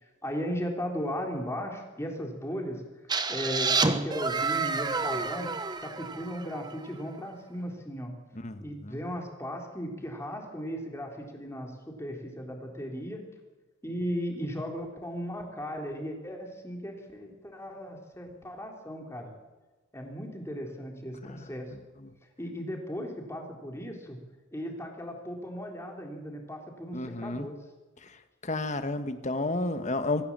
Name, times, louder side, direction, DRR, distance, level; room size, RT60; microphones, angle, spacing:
voice 1, 0.0-5.5 5.8-8.1 8.6-13.2 13.8-19.3 19.9-21.7 22.4-24.2 24.5-27.6, equal, 15° left, 1 dB, 3.8 m, -36 dB
sound 1, 3.1-6.8, right 4 dB, 20° right, 1.2 m, -29 dB
voice 2, 8.4-9.0 21.2-21.5 26.9-27.5 28.4-30.3, left 2 dB, 35° left, 9 dB, 1.5 m, -31 dB
24.0 x 15.5 x 7.6 m, 1.2 s
head